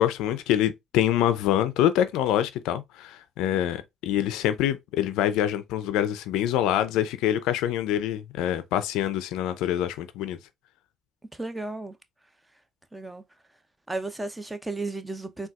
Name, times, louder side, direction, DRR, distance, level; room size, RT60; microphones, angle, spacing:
voice 1, 0.0-10.4, left 11 dB, 80° left, 0.4 m, -25 dB
voice 2, 11.3-12.0 12.9-13.2 13.9-15.5, right 2 dB, 15° right, 0.6 m, -33 dB
4.0 x 2.3 x 2.3 m
supercardioid pair, 75°, 0 cm